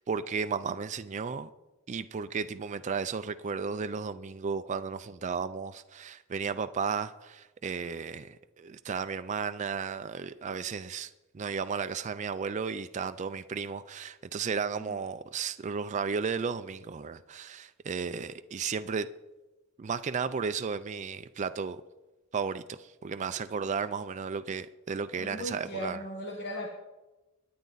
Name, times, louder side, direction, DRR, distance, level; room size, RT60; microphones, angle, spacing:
voice 1, 0.0-1.5 1.9-19.1 19.8-21.8 22.3-26.0, right 5 dB, 35° right, 0.4 m, -34 dB
voice 2, 25.1-26.7, equal, 50° left, 1.4 m, -37 dB
23.0 x 9.5 x 4.0 m
head